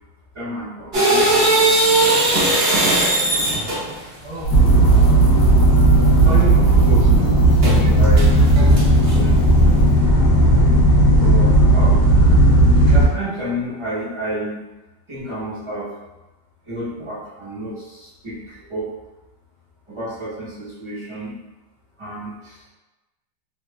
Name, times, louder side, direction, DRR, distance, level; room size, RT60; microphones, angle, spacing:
voice 1, 0.3-2.0 4.2-4.5 6.2-9.7 11.2-12.0 12.9-14.6 15.1-15.9 16.7-18.9 19.9-21.4 22.0-22.6, right 1 dB, 25° right, -10 dB, 0.7 m, -30 dB
sound 1, 0.9-4.0 7.6-7.8 8.2-9.1, right 2 dB, 90° right, 0.5 m, -18 dB
sound 2, 4.4-10.0, right 6 dB, 75° left, 1.1 m, -21 dB
sound 3, 4.5-13.1, right 1 dB, 60° left, 0.5 m, -14 dB
3.0 x 2.2 x 2.3 m, 1.1 s
omnidirectional pair, 2.0 m